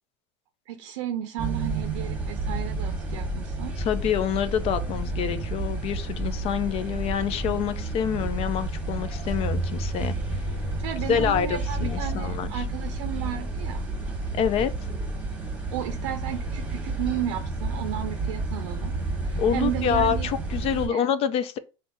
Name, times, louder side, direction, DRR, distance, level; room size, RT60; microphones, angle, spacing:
voice 1, 0.7-3.8 10.8-13.9 15.7-18.9 19.2-20.3 20.6-21.1, right 11 dB, 90° right, 0.6 m, -33 dB
sound 1, 1.4-20.9, right 2 dB, 10° right, 1.2 m, -30 dB
voice 2, 3.8-10.1 11.1-12.6 14.3-14.7 19.4-21.6, left 8 dB, 40° left, 0.4 m, -27 dB
3.4 x 2.6 x 3.9 m
supercardioid pair, 125°, 15 cm